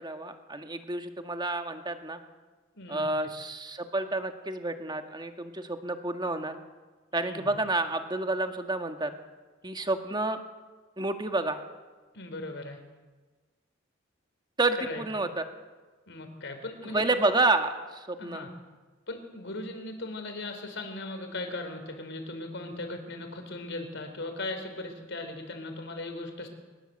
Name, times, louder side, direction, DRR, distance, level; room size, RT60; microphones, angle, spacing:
voice 1, 0.0-2.2 2.9-6.6 7.1-9.1 9.6-10.4 11.0-11.6 14.6-15.4 16.9-18.4, right 2 dB, 20° right, 6 dB, 1.8 m, -29 dB
voice 2, 2.7-3.1 7.1-7.6 12.1-12.8 14.9-15.0 16.1-17.3 18.2-18.5 19.1-26.5, left 2 dB, 65° left, 6 dB, 4.4 m, -38 dB
23.5 x 21.0 x 8.0 m, 1.3 s
head